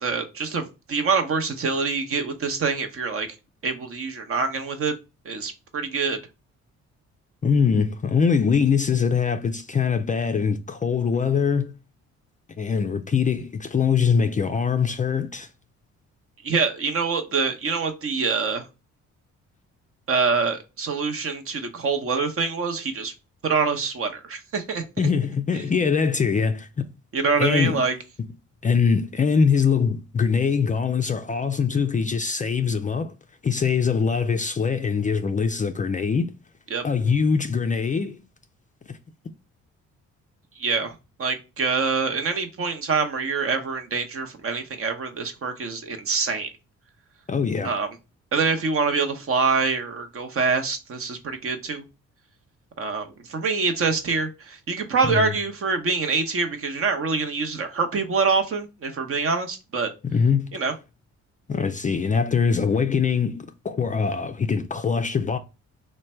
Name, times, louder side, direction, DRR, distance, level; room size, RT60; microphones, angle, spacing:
voice 1, 0.0-3.3 3.6-4.9 5.2-6.2 16.4-18.6 20.1-23.1 23.4-24.8 25.5-25.7 27.1-28.0 36.7-36.8 40.6-46.5 47.6-47.9 48.3-51.8 52.8-59.9 60.5-60.7, right 4 dB, 45° right, 0.8 m, -25 dB
voice 2, 7.4-11.8 12.6-15.5 25.0-26.9 27.4-27.8 28.6-33.1 33.4-36.3 36.8-38.2 38.9-39.0 47.3-47.7 55.1-55.3 60.0-60.6 61.5-65.4, left 6 dB, 25° left, 0.3 m, -23 dB
3.2 x 2.2 x 4.3 m
cardioid pair, 90°, 30 cm